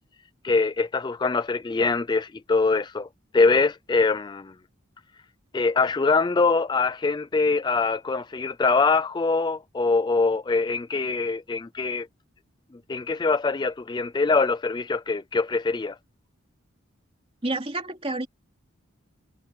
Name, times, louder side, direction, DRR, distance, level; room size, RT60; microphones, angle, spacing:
voice 1, 0.4-3.1 3.3-4.5 5.5-12.1 12.9-16.0, left 4 dB, 20° left, 0.3 m, -23 dB
voice 2, 17.4-18.3, right 2 dB, 30° right, 2.6 m, -29 dB
head